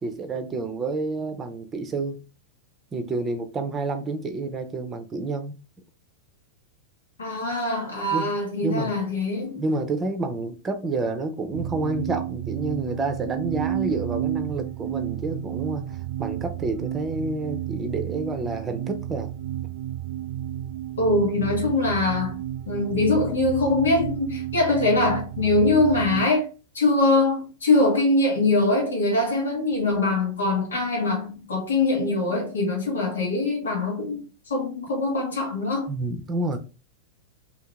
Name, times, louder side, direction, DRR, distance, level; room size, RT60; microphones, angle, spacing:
voice 1, 0.0-2.2 2.9-5.6 8.1-8.3 8.6-8.9 9.5-19.3 35.9-36.6, right 3 dB, 20° right, 0.7 m, -29 dB
voice 2, 7.2-9.6 21.0-22.4 22.7-26.5 26.7-35.9, left 2 dB, 80° left, 1.4 m, -23 dB
sound 1, 11.5-26.3, right 12 dB, 55° right, 0.4 m, -31 dB
2.8 x 2.8 x 3.5 m
hypercardioid pair, 100°, 0 cm